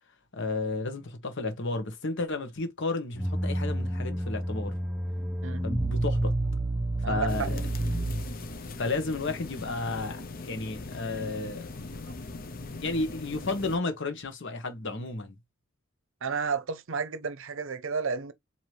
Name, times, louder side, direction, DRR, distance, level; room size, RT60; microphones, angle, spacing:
voice 1, 0.3-4.7 5.6-6.3 7.1-7.6 8.7-11.7 12.8-15.4, left 3 dB, 60° left, 1.1 m, -32 dB
sound 1, 3.1-8.6, right 1 dB, 5° right, 0.7 m, -30 dB
sound 2, 7.3-13.8, left 3 dB, 45° left, 0.7 m, -40 dB
voice 2, 16.2-18.3, right 5 dB, 65° right, 0.7 m, -31 dB
4.6 x 2.9 x 3.2 m
head